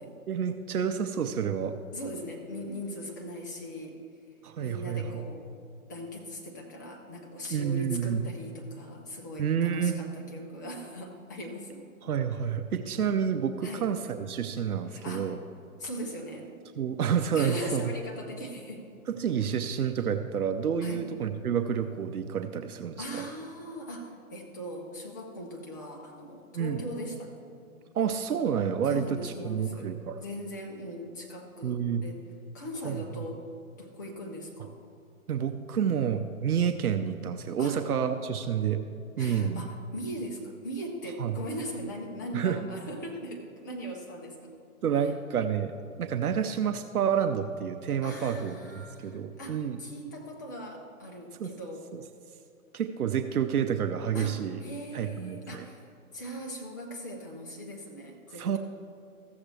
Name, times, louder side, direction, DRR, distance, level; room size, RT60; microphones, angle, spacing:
voice 1, 0.3-1.8 4.4-5.2 7.5-8.2 9.4-10.0 12.0-15.4 16.8-17.8 19.2-23.2 26.5-26.8 27.9-30.2 31.6-32.0 32.8-33.0 35.3-38.8 39.2-39.7 41.2-41.4 42.3-42.6 44.8-45.7 46.0-49.8 51.4-51.5 52.7-54.6 54.9-55.6 58.4-58.6, right 8 dB, 90° right, 8 dB, 0.7 m, -29 dB
voice 2, 1.9-4.0 4.6-5.5 5.9-11.8 13.6-13.9 14.9-15.4 15.8-16.5 17.3-18.8 20.8-21.1 23.0-27.3 28.8-29.9 30.2-32.2 32.5-33.4 33.8-34.7 37.6-37.9 39.2-44.5 48.0-51.9 54.1-55.9 56.1-58.6, equal, 15° left, 0 dB, 0.4 m, -39 dB
14.5 x 7.2 x 3.3 m, 2.5 s
hypercardioid pair, 140°, 43 cm